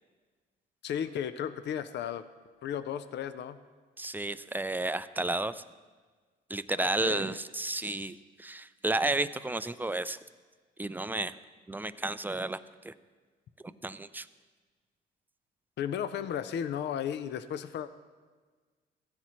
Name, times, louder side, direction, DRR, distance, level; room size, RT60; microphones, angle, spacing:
voice 1, 0.8-2.2 2.6-3.6 6.8-7.3 15.8-17.9, left 9 dB, 60° left, 12 dB, 0.5 m, -34 dB
voice 2, 4.0-5.6 6.5-10.2 10.8-11.4 11.7-12.9 13.8-14.3, right 2 dB, 10° right, 15 dB, 0.3 m, -32 dB
16.0 x 9.7 x 3.1 m, 1.4 s
cardioid pair, 90°, 20 cm